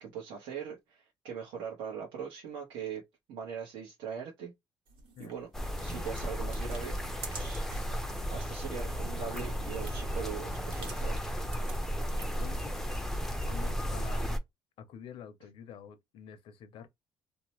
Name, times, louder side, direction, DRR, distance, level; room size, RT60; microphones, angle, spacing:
voice 1, 0.0-3.0 3.3-4.5 5.2-5.5 5.8-7.0 7.3-7.6 8.3-11.2, right 7 dB, 75° right, 1.0 m, -41 dB
sound 1, 4.9-7.9 8.3-12.5, right 3 dB, 60° right, 1.4 m, -49 dB
sound 2, 5.5-14.4, equal, 5° left, 0.4 m, -34 dB
voice 2, 12.2-12.9 13.5-14.2 14.8-16.9, left 8 dB, 70° left, 0.6 m, -48 dB
2.8 x 2.1 x 2.9 m
cardioid pair, 145°, 10 cm